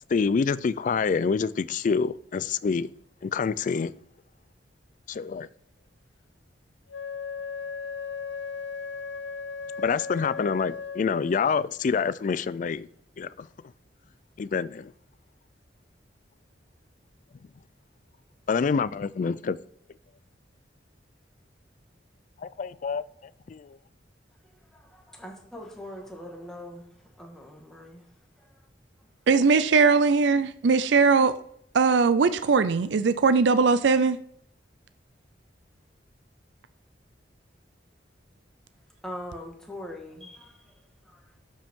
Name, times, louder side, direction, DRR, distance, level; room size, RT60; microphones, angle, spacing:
voice 1, 0.1-2.9 3.2-3.9 5.1-5.5 9.8-12.9 13.2-13.5 14.4-14.9 18.5-19.6 22.4-23.0 23.5-23.8, left 5 dB, 45° left, 0.3 m, -27 dB
Wind instrument woodwind instrument, 6.9-11.5, left 5 dB, 75° left, 0.7 m, -36 dB
voice 2, 24.7-28.1 28.4-28.7 29.0-29.1 39.0-40.8 41.0-41.3, left 1 dB, 5° left, 1.5 m, -42 dB
voice 3, 29.3-31.4 31.7-34.2, right 4 dB, 75° right, 0.4 m, -20 dB
12.0 x 5.2 x 3.7 m
head